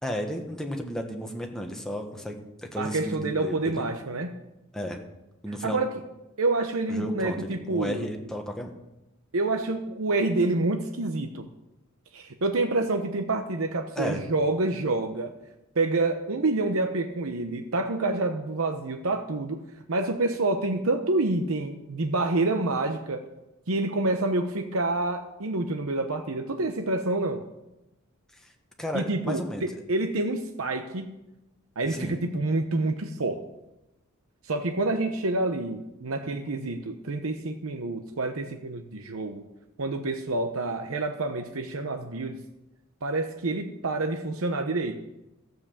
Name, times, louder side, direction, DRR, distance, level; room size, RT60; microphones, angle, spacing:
voice 1, 0.0-3.9 4.7-5.0 5.4-5.8 6.9-8.7 13.9-14.2 28.8-29.7 31.9-32.2, equal, 5° left, 2 dB, 1.4 m, -33 dB
voice 2, 2.8-4.3 5.6-5.9 6.4-8.1 9.3-11.5 12.1-15.3 15.8-19.6 19.9-23.2 23.7-27.4 28.9-31.1 31.8-33.4 34.4-39.4 39.8-42.4 43.0-45.0, right 2 dB, 75° right, 6 dB, 0.9 m, -28 dB
13.5 x 7.7 x 7.2 m, 0.95 s
head